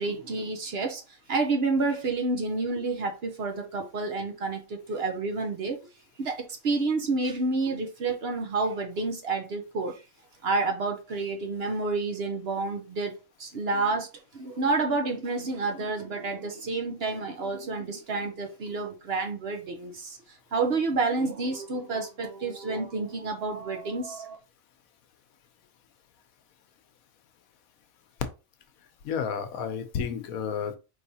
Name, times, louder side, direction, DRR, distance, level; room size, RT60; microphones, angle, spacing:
voice 1, 0.0-5.8 6.2-10.0 10.4-20.2 20.5-24.4, right 3 dB, 55° right, 0.9 m, -29 dB
voice 2, 29.0-30.8, left 7 dB, 80° left, 1.1 m, -31 dB
4.7 x 3.3 x 2.7 m
omnidirectional pair, 1.5 m